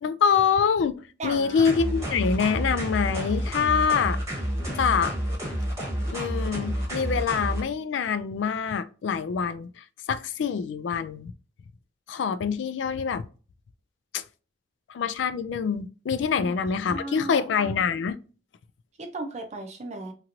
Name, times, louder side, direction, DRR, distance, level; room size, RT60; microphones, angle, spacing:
voice 1, 0.0-4.2 4.8-5.2 6.1-11.3 12.1-13.3 14.1-14.2 14.9-18.2, left 6 dB, 90° left, 0.3 m, -25 dB
voice 2, 1.2-1.6 16.3-16.5 16.9-17.5 19.0-20.1, right 2 dB, 40° right, 0.5 m, -36 dB
sound 1, 1.6-7.6, right 1 dB, 15° right, 0.9 m, -29 dB
2.9 x 2.9 x 2.4 m
head